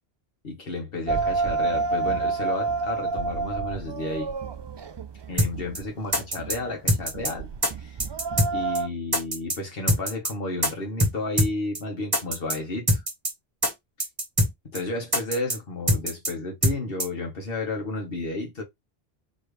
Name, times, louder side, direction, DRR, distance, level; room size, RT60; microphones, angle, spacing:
voice 1, 0.4-4.3 5.3-8.0 8.5-13.0 14.6-18.6, left 2 dB, 65° left, 1.7 m, -32 dB
sound 1, 1.1-8.9, right 4 dB, 50° right, 0.3 m, -29 dB
sound 2, 5.4-5.5 5.7-5.8 6.1-6.6 6.9-7.3 7.6-7.7 8.0-8.5 8.7-8.8 9.1-9.6 9.9-10.3 10.6-10.7 11.0-11.1 11.4-11.5 11.7-11.8 12.1-12.6 12.9-13.3 13.6-13.7 14.0-14.5 14.7-14.8 15.1-15.6 15.9-16.3 16.6-16.7 17.0-17.1, equal, 20° right, 1.1 m, -23 dB
4.3 x 3.1 x 3.2 m
omnidirectional pair, 1.1 m